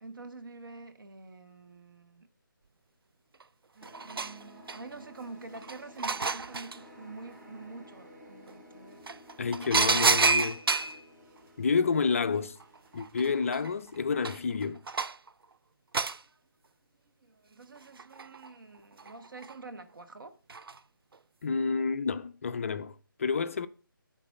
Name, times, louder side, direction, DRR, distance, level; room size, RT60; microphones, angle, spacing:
voice 1, 0.0-2.3 4.0-9.0 9.5-10.0 11.7-11.8 16.0-16.4 17.2-20.4, right 3 dB, 65° right, 1.0 m, -47 dB
sound 1, 3.4-3.5 3.8-5.0 5.5-6.8 8.5-8.6 9.1-11.0 12.6-12.7 13.0-15.3 15.9-16.2 17.8-18.5 19.0-19.5 20.5-20.8 21.1-21.2, right 4 dB, 85° right, 0.4 m, -29 dB
sound 2, 3.7-14.0, right 2 dB, 45° right, 2.1 m, -59 dB
sound 3, 3.8-13.1, left 2 dB, 10° right, 1.3 m, -55 dB
voice 2, 9.4-10.6 11.6-12.6 12.9-14.8 21.4-23.7, left 5 dB, 40° left, 0.4 m, -29 dB
8.3 x 3.8 x 5.5 m
figure-of-eight pair, 155°, 12 cm